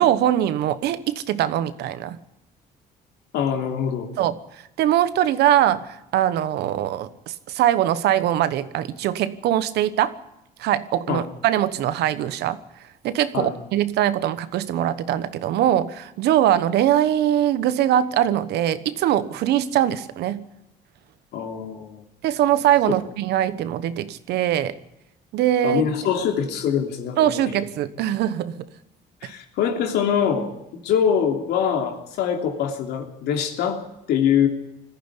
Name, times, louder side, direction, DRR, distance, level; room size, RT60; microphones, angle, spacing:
voice 1, 0.0-2.2 4.2-10.1 10.6-12.6 13.0-20.4 22.2-24.8 25.3-25.8 27.2-28.6 29.2-29.3, right 11 dB, 75° right, 14 dB, 1.2 m, -22 dB
voice 2, 3.3-4.1 11.1-11.2 13.3-13.5 21.3-22.0 25.6-27.5 29.2-33.8 34.1-34.5, left 8 dB, 80° left, 4 dB, 3.1 m, -24 dB
20.5 x 14.5 x 9.9 m, 0.87 s
cardioid pair, 110°, 17 cm